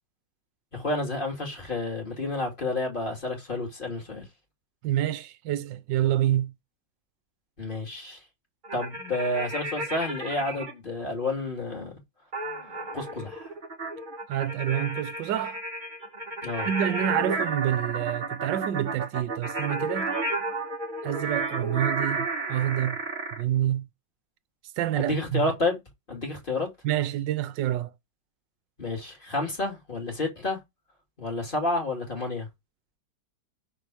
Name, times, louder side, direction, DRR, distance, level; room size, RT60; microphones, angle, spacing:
voice 1, 0.7-4.2 7.6-8.2 8.7-11.9 12.9-13.5 16.4-16.7 25.0-25.8 26.1-26.7 28.8-30.6 31.2-32.5, left 2 dB, 25° left, 2.5 m, -30 dB
voice 2, 4.8-6.5 14.3-15.6 16.6-20.2 21.0-23.0 23.3-23.9 24.8-25.5 26.8-27.9, right 12 dB, 75° right, 1.3 m, -27 dB
sound 1, 8.6-10.7 12.3-23.4, right 2 dB, 25° right, 1.4 m, -32 dB
6.2 x 4.4 x 4.7 m
omnidirectional pair, 2.1 m